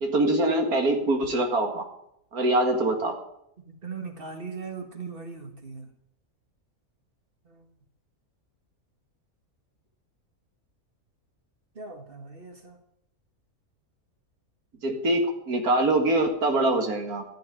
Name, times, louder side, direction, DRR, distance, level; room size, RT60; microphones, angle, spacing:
voice 1, 0.0-1.8 2.3-3.1 14.8-17.2, right 2 dB, 90° right, 4 dB, 2.5 m, -24 dB
voice 2, 3.8-5.9 7.5-7.7 11.8-12.8, right 4 dB, 40° right, 5 dB, 2.1 m, -39 dB
14.0 x 7.8 x 9.9 m, 0.76 s
omnidirectional pair, 1.5 m